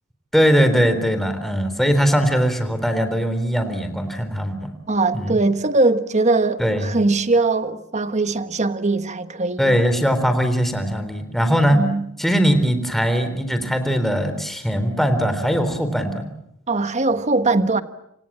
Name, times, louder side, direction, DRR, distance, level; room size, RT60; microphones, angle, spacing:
voice 1, 0.3-4.7 5.1-5.4 6.6-7.0 9.6-11.8 12.2-16.3, equal, ahead, 3.9 m, -20 dB
voice 2, 4.9-9.8 11.7-12.1 16.7-17.8, right 3 dB, 35° right, 1.4 m, -21 dB
28.5 x 27.5 x 7.5 m
head